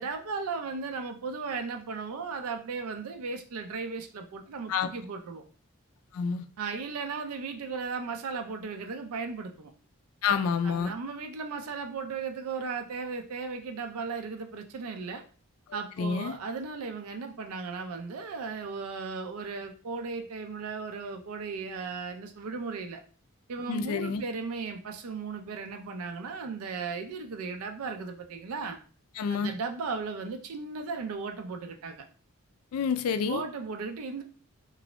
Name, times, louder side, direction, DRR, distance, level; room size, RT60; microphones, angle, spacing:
voice 1, 0.0-5.4 6.6-9.7 10.6-15.2 15.7-23.0 23.5-28.8 29.3-32.0 33.3-34.2, right 4 dB, 90° right, 0.4 m, -36 dB
voice 2, 6.1-6.4 10.2-10.9 16.0-16.4 23.7-24.2 29.2-29.5 32.7-33.4, left 6 dB, 90° left, 0.3 m, -28 dB
3.0 x 2.6 x 2.9 m
head